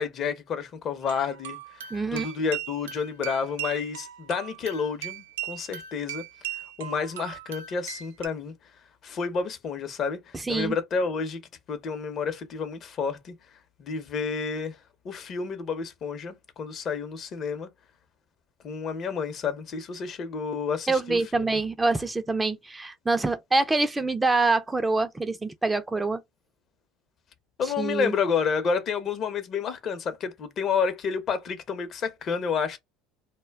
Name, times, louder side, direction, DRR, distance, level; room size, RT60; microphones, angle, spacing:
voice 1, 0.0-6.2 6.5-8.5 9.0-11.4 11.7-13.3 13.8-14.8 15.0-17.7 18.6-21.6 27.6-32.8, left 5 dB, 45° left, 0.7 m, -30 dB
sound 1, 1.0-8.3, right 11 dB, 85° right, 0.3 m, -38 dB
voice 2, 1.9-2.3 10.3-10.7 20.9-26.2 27.8-28.1, right 3 dB, 15° right, 0.4 m, -25 dB
2.1 x 2.1 x 3.3 m
hypercardioid pair, 85°, 0 cm